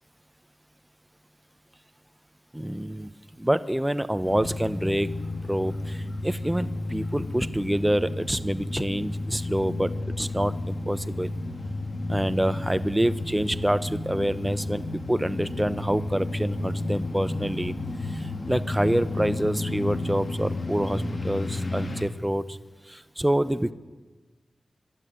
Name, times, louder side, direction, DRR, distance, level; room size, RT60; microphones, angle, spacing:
voice 1, 2.5-3.1 3.4-5.1 5.5-9.9 10.2-11.3 12.1-17.7 18.1-22.6 22.9-23.7, right 1 dB, 10° right, 13 dB, 1.0 m, -27 dB
sound 1, 4.2-22.0, left 2 dB, 60° left, 2.8 m, -32 dB
23.5 x 12.5 x 9.7 m, 1.3 s
cardioid pair, 50°, 0 cm